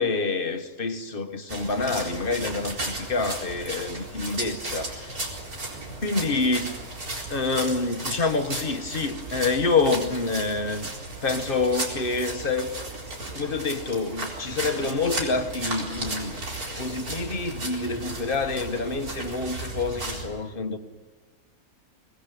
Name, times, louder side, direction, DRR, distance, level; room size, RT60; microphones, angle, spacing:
voice 1, 0.0-5.3 6.0-6.8 7.3-10.9 11.2-12.7 13.3-16.4 16.8-20.8, left 3 dB, 40° left, 1.6 m, -27 dB
sound 1, 1.5-20.3, right 2 dB, 85° right, 4.8 m, -35 dB
24.5 x 19.5 x 9.2 m
omnidirectional pair, 1.5 m